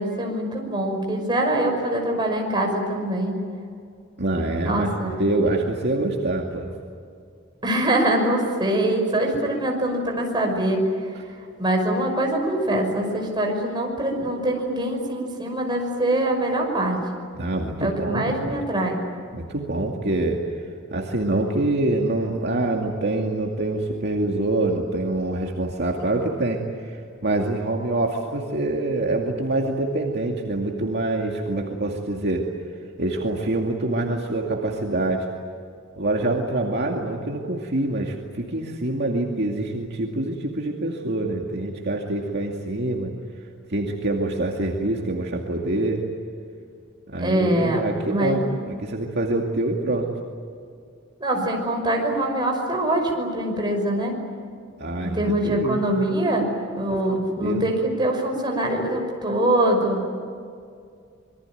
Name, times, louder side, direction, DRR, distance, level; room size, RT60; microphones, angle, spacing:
voice 1, 0.0-3.4 4.6-5.2 7.6-10.8 11.6-17.0 17.8-19.0 47.2-47.8 48.1-48.6 51.2-54.2 55.1-60.0, right 1 dB, 25° right, 2 dB, 5.7 m, -23 dB
voice 2, 4.2-6.7 17.3-18.6 19.3-20.4 20.9-32.5 33.0-35.3 36.0-43.1 43.7-46.0 47.1-50.1 54.8-55.8 56.9-57.0 57.4-57.6, right 2 dB, 55° right, 0 dB, 2.4 m, -25 dB
27.0 x 23.0 x 9.3 m, 2.2 s
head